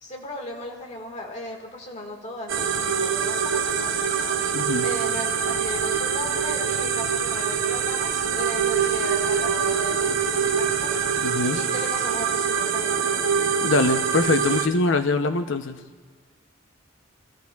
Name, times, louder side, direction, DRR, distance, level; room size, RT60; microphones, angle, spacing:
voice 1, 0.0-13.4, left 1 dB, 35° left, 0 dB, 1.7 m, -37 dB
sound 1, 2.5-14.7, right 7 dB, 75° right, 0.7 m, -24 dB
voice 2, 4.5-4.9 11.2-11.6 13.6-15.8, left 3 dB, 65° left, 9 dB, 0.7 m, -23 dB
25.5 x 14.5 x 2.3 m, 1.5 s
head